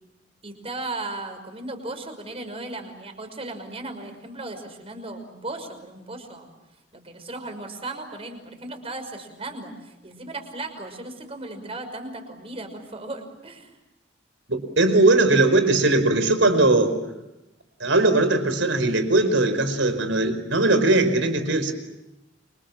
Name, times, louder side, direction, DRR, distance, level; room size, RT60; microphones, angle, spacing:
voice 1, 0.4-6.5 6.9-13.8, right 2 dB, 30° right, 6 dB, 5.9 m, -36 dB
voice 2, 14.5-17.0 17.8-21.7, right 2 dB, 75° right, 9 dB, 5.0 m, -19 dB
30.0 x 26.0 x 7.4 m, 0.96 s
head